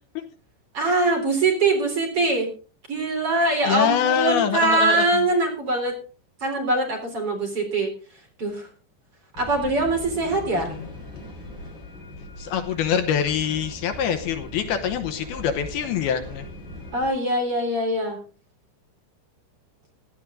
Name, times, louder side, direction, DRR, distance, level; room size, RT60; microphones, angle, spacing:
voice 1, 0.7-2.5 2.9-5.9 6.4-7.9 8.4-8.7 9.4-10.7 16.9-18.2, right 2 dB, 35° right, 2 dB, 4.2 m, -23 dB
voice 2, 3.7-5.3 10.5-10.9 12.4-16.5, left 8 dB, 75° left, 7 dB, 2.7 m, -25 dB
sound 1, 9.3-17.1, left 1 dB, 25° left, 4.5 m, -40 dB
16.5 x 11.5 x 3.7 m, 0.37 s
omnidirectional pair, 4.9 m